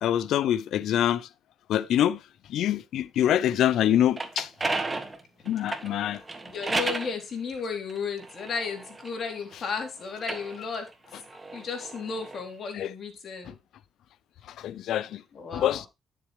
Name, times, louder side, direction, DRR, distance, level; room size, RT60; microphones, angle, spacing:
voice 1, 0.0-1.3 1.7-2.2 2.5-4.5 5.5-6.2 12.7-12.9 13.5-13.6 14.5-15.2 15.5-15.9, left 11 dB, 80° left, 0.5 m, -25 dB
sound 1, 3.9-7.1 7.9-9.6 10.1-12.4, right 3 dB, 20° right, 1.4 m, -34 dB
voice 2, 6.4-11.2 11.5-13.5 15.3-15.8, left 5 dB, 50° left, 3.3 m, -34 dB
10.0 x 7.4 x 3.2 m
cardioid pair, 90°, 0 cm